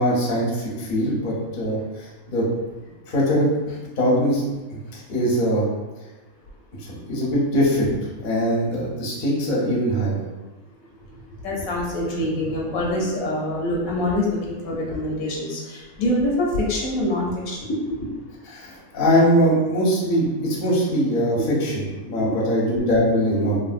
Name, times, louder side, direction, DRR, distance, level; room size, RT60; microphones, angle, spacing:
voice 1, 0.0-2.5 3.1-4.4 4.7-5.7 6.8-7.9 8.2-10.2 18.4-23.6, equal, 45° left, -5 dB, 0.8 m, -22 dB
voice 2, 11.4-17.8 22.2-22.3, left 1 dB, 75° left, -2 dB, 1.1 m, -25 dB
3.2 x 2.6 x 2.4 m, 1.1 s
omnidirectional pair, 1.5 m